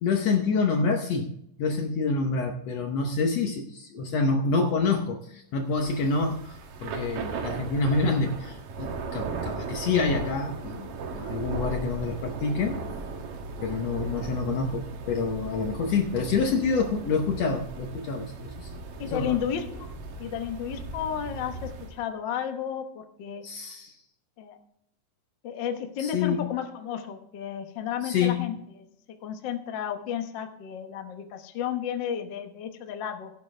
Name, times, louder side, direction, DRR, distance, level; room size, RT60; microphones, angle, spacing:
voice 1, 0.0-12.8 13.6-18.7 19.0-19.4 23.4-24.0 26.0-26.5 28.0-28.5, left 4 dB, 65° left, 3 dB, 1.7 m, -27 dB
Thunder / Rain, 5.7-22.0, right 4 dB, 90° right, 3.0 m, -37 dB
voice 2, 19.0-19.9 20.2-23.4 24.4-24.6 25.4-28.9 29.2-33.3, left 9 dB, 85° left, 6 dB, 1.0 m, -32 dB
16.5 x 8.3 x 3.3 m, 0.74 s
omnidirectional pair, 3.8 m